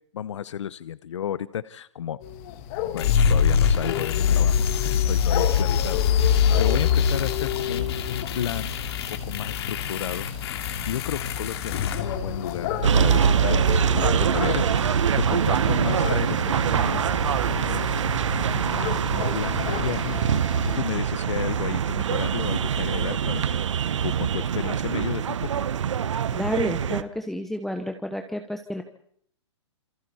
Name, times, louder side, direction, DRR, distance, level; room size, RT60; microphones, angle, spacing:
voice 1, 0.1-2.2 2.9-8.7 9.2-17.0 17.4-17.9 18.5-20.2 20.8-23.6 24.0-25.6, left 9 dB, 70° left, 16 dB, 0.8 m, -33 dB
sound 1, 2.2-20.8, left 8 dB, 35° left, 1.7 m, -32 dB
sound 2, 3.0-12.9, left 7 dB, 55° left, 2.4 m, -24 dB
sound 3, 12.8-27.0, right 8 dB, 75° right, 1.0 m, -24 dB
voice 2, 26.3-28.8, left 1 dB, ahead, 5 dB, 1.0 m, -30 dB
27.5 x 26.0 x 4.2 m, 0.67 s
hypercardioid pair, 145°, 16 cm